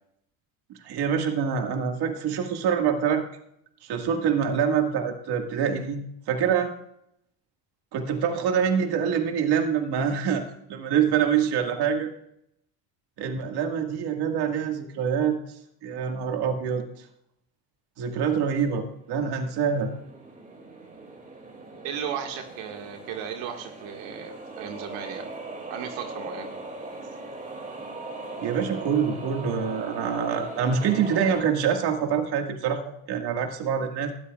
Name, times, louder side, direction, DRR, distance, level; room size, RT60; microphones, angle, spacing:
voice 1, 0.8-3.2 3.8-6.7 7.9-12.1 13.2-15.4 15.8-16.8 18.0-19.9 28.4-34.1, right 7 dB, 60° right, 4 dB, 2.0 m, -25 dB
sound 1, 19.0-31.4, right 2 dB, 20° right, 2.5 m, -40 dB
voice 2, 21.8-25.3 25.7-26.5, right 8 dB, 85° right, 3 dB, 1.9 m, -35 dB
18.5 x 13.0 x 2.4 m, 0.74 s
cardioid pair, 115°, 44 cm